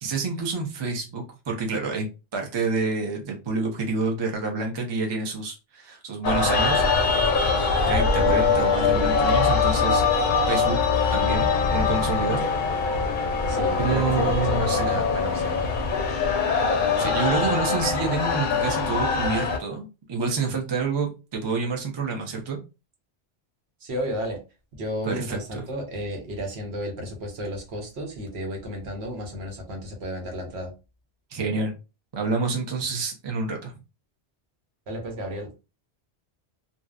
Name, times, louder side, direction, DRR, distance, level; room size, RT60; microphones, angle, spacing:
voice 1, 0.0-6.8 7.9-10.0 10.5-10.8 11.1-12.4 13.8-15.0 17.0-22.6 25.1-25.6 31.3-31.7 32.1-33.8, right 4 dB, 35° right, 2 dB, 0.5 m, -28 dB
sound 1, 6.2-19.6, left 5 dB, 60° left, 0.6 m, -23 dB
voice 2, 13.5-15.6 23.8-24.4 24.8-30.7 34.9-35.5, equal, 70° right, 3 dB, 1.0 m, -33 dB
2.7 x 2.0 x 2.3 m, 0.29 s
omnidirectional pair, 1.1 m